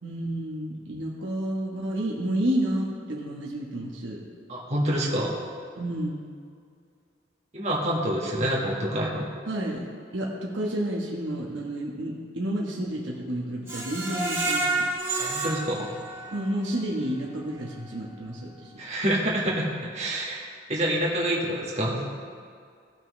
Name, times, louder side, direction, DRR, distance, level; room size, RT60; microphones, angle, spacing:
voice 1, 0.0-4.2 5.8-6.3 9.5-14.8 16.3-18.7 20.7-20.9, right 1 dB, 70° right, -3 dB, 1.2 m, -30 dB
voice 2, 4.5-5.4 7.5-9.3 15.2-15.9 18.8-19.7 19.9-22.1, right 1 dB, 35° right, -4 dB, 1.6 m, -27 dB
Screech, 13.7-16.7 17.1-17.2 17.6-17.7, right 2 dB, 15° right, 1.6 m, -29 dB
16.5 x 5.9 x 3.2 m, 2.2 s
head